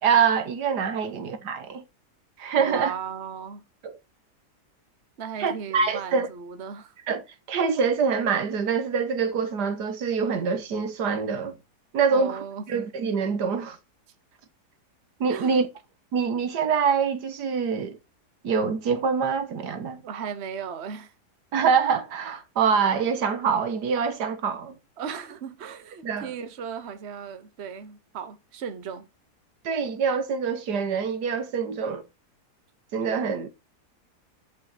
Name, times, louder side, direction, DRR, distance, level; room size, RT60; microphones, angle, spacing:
voice 1, 0.0-1.8 2.4-2.9 3.8-3.9 5.4-6.3 7.1-7.2 7.5-11.6 11.9-12.4 12.7-13.8 15.2-15.7 16.1-18.0 18.4-20.0 21.5-24.7 26.0-26.3 29.6-32.0 32.9-33.5, right 6 dB, 80° right, 1.8 m, -25 dB
voice 2, 2.6-3.6 5.2-7.0 12.1-12.6 15.3-15.6 20.0-21.1 25.0-29.1, right 7 dB, 45° right, 1.2 m, -36 dB
11.0 x 5.7 x 4.1 m
omnidirectional pair, 1.8 m